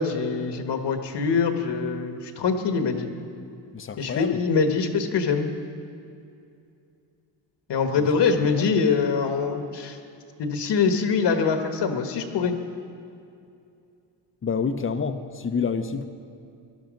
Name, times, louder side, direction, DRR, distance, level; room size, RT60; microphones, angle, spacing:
voice 1, 0.0-3.1 4.0-5.5 7.7-10.0 10.4-12.5, left 5 dB, 60° left, 6 dB, 1.3 m, -24 dB
voice 2, 3.7-4.4 7.9-8.1 8.5-8.7 14.4-16.1, left 5 dB, 25° left, 9 dB, 0.7 m, -28 dB
18.0 x 11.5 x 5.2 m, 2.5 s
cardioid pair, 140°, 46 cm